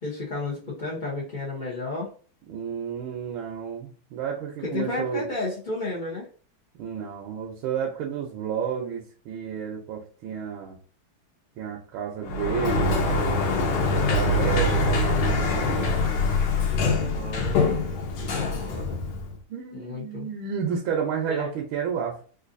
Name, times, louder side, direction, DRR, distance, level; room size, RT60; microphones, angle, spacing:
voice 1, 0.0-2.1 4.6-6.3 16.7-17.6 18.2-19.0 19.7-20.3 21.3-21.5, left 2 dB, 65° left, -5 dB, 0.4 m, -32 dB
voice 2, 2.5-5.3 6.8-10.8 11.6-12.9 13.9-15.9 19.5-22.2, right 7 dB, 80° right, 0 dB, 1.5 m, -31 dB
Sliding door, 12.2-19.4, left 2 dB, 85° left, 1.6 m, -24 dB
4.0 x 2.5 x 2.5 m, 0.40 s
omnidirectional pair, 2.2 m